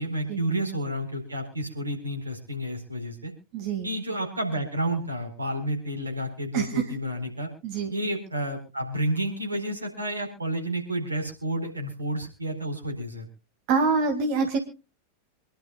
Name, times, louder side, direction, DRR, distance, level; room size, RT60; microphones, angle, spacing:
voice 1, 0.0-3.3 3.8-7.5 7.9-13.3, right 1 dB, 80° right, 3 dB, 4.4 m, -30 dB
voice 2, 3.5-3.9 6.5-6.8 7.6-7.9 13.7-14.6, right 4 dB, 45° right, 5 dB, 2.2 m, -25 dB
26.5 x 11.5 x 2.3 m, 0.31 s
figure-of-eight pair, 90°, 0 cm